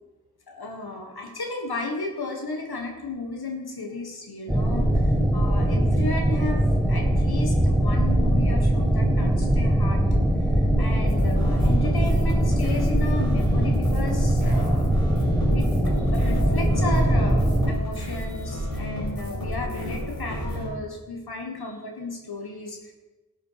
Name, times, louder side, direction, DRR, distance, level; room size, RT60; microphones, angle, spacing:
voice 1, 0.5-10.0 10.4-14.9 15.5-22.9, left 2 dB, 80° left, 1 dB, 1.6 m, -34 dB
sound 1, 4.5-17.7, right 1 dB, ahead, 1.5 m, -21 dB
sound 2, 11.1-20.7, left 1 dB, 65° left, 4.8 m, -32 dB
13.5 x 7.3 x 5.7 m, 1.1 s
wide cardioid pair, 50°, 37 cm